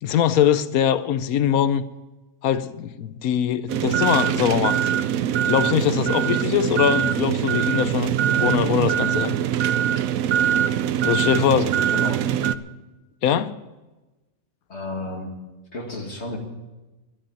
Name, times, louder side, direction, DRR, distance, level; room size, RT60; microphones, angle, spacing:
voice 1, 0.0-1.9 2.4-4.9 5.5-8.1 8.4-9.4 11.0-11.7 13.2-13.6, left 9 dB, 75° left, 1.1 m, -22 dB
sound 1, 3.7-12.6, right 10 dB, 70° right, 1.0 m, -22 dB
voice 2, 11.4-12.2 14.7-15.4 15.7-16.4, left 2 dB, 50° left, 2.3 m, -33 dB
12.0 x 10.0 x 8.9 m
omnidirectional pair, 1.5 m